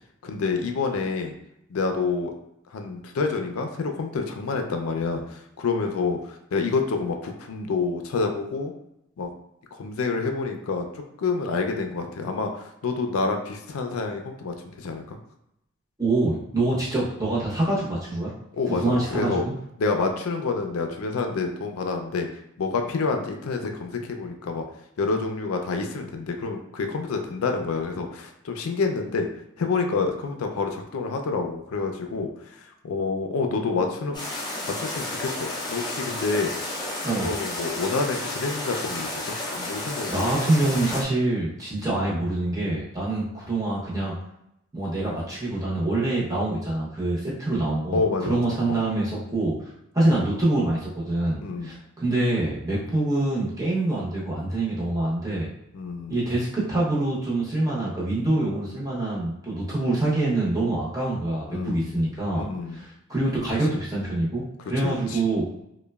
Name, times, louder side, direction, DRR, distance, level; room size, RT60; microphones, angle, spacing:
voice 1, 0.2-1.3 1.7-2.3 2.7-8.7 9.2-9.3 9.8-10.9 11.2-15.2 18.6-19.4 19.8-22.3 22.6-24.6 25.0-29.3 29.6-32.3 32.8-34.2 34.8-36.5 37.2-40.7 47.9-48.4 48.7-48.8 51.4-51.8 55.7-56.2 61.5-62.0 62.3-62.8 64.8-65.2, left 4 dB, 85° left, 4 dB, 0.4 m, -28 dB
voice 2, 16.0-18.3 18.7-19.5 37.0-37.4 40.1-44.1 44.7-49.5 49.9-55.5 56.1-65.4, right 2 dB, 15° right, -6 dB, 0.7 m, -25 dB
sound 1, 34.1-41.0, left 1 dB, 20° left, 0.4 m, -32 dB
2.9 x 2.1 x 2.2 m, 0.82 s
head